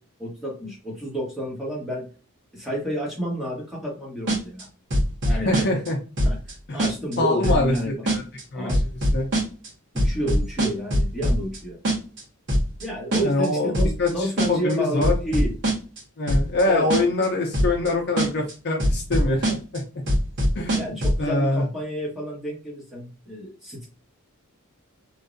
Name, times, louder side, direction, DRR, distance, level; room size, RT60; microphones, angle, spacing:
voice 1, 0.2-2.0 2.5-4.6 5.3-5.7 6.2-6.3 6.7-7.9 8.5-8.8 9.9-11.8 12.8-15.5 16.7-16.9 20.7-23.9, equal, ahead, -5 dB, 1.4 m, -30 dB
sound 1, 4.3-4.6 4.9-5.9 6.2-6.5 6.8-7.2 7.4-7.8 8.1-8.4 8.7-9.7 10.0-11.6 11.8-12.2 12.5-12.8 13.1-13.5 13.7-14.1 14.4-14.7 15.0-16.0 16.3-16.6 16.9-17.3 17.5-17.9 18.2-18.5 18.8-19.8 20.1-21.2, equal, 55° right, 1.3 m, -22 dB
voice 2, 5.3-6.0 6.7-6.8 7.2-8.2 8.5-8.8 9.1-9.3 13.2-13.7 14.0-15.1 16.2-19.8 20.5-21.6, left 2 dB, 50° left, 1 dB, 0.7 m, -24 dB
3.2 x 2.7 x 2.5 m, 0.35 s
head